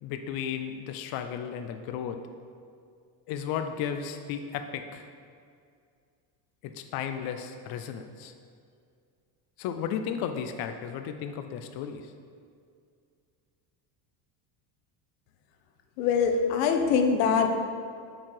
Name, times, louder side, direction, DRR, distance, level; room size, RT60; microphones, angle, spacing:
voice 1, 0.0-2.2 3.3-5.1 6.6-8.3 9.6-12.1, left 8 dB, 50° left, 7 dB, 0.5 m, -34 dB
voice 2, 16.0-17.6, left 5 dB, 85° left, 5 dB, 0.9 m, -23 dB
7.4 x 4.7 x 4.7 m, 2.3 s
cardioid pair, 135°, 48 cm